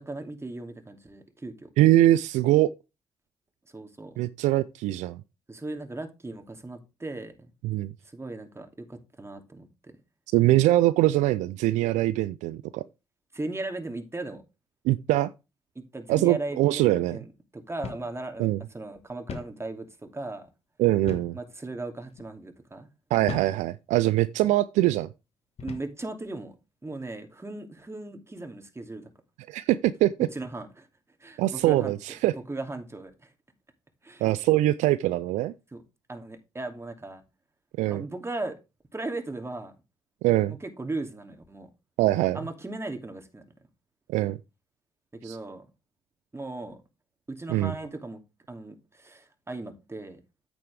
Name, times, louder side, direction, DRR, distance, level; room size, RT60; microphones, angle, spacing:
voice 1, 0.0-1.7 3.7-4.1 5.5-7.3 8.1-9.7 13.3-14.4 15.7-17.3 17.5-19.9 20.1-20.5 21.3-22.9 25.6-26.6 26.8-29.1 30.3-30.9 31.2-31.9 32.5-33.1 34.0-34.2 35.7-35.8 36.1-37.2 37.9-38.5 38.9-39.7 40.5-41.7 42.3-43.4 45.1-45.7 46.3-46.8 47.3-48.2 48.5-50.2, right 2 dB, 20° right, 2.7 m, -37 dB
voice 2, 1.8-2.7 4.2-5.2 7.6-7.9 10.3-12.8 14.8-15.3 16.1-17.2 18.4-18.6 20.8-21.4 23.1-25.1 29.5-30.3 31.4-32.3 34.2-35.5 37.8-38.0 40.2-40.6 42.0-42.4 44.1-44.4 45.2-45.4 47.5-47.7, right 15 dB, 75° right, 0.4 m, -23 dB
sound 1, 17.8-18.1 18.4-18.5 19.3-19.6 21.1-21.4 22.1-22.3 23.3-23.6 24.4-24.6 25.6-26.0, left 6 dB, 55° left, 1.7 m, -38 dB
9.2 x 8.9 x 3.4 m
hypercardioid pair, 45°, 12 cm